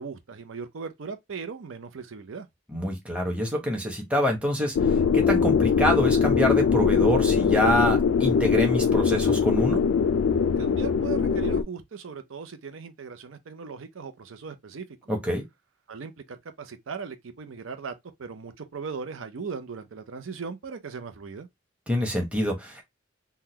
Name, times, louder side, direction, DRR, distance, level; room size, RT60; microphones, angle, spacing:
voice 1, 0.0-2.5 10.6-15.1 15.9-17.9 18.2-21.5, right 5 dB, 80° right, 0.6 m, -38 dB
voice 2, 2.7-4.7 5.1-9.8 15.1-15.4 21.9-22.8, equal, 5° right, 1.0 m, -26 dB
sound 1, 4.8-11.6, left 6 dB, 75° left, 0.3 m, -22 dB
3.7 x 2.2 x 2.8 m
head